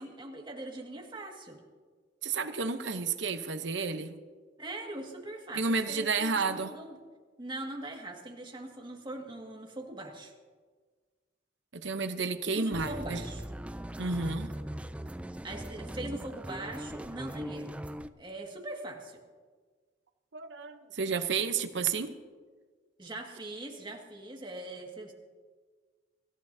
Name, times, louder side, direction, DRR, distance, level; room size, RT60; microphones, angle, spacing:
voice 1, 0.0-1.6 4.6-7.0 7.4-10.3 12.5-13.4 15.4-17.8 18.2-19.2 23.0-25.1, right 1 dB, 25° right, 1 dB, 2.0 m, -41 dB
voice 2, 2.2-4.2 5.5-6.7 11.7-13.2 14.0-14.5 20.3-22.1, right 4 dB, 70° right, 9 dB, 0.9 m, -31 dB
sound 1, 12.7-18.1, right 1 dB, 5° right, 0.4 m, -40 dB
24.5 x 14.0 x 2.8 m, 1.5 s
head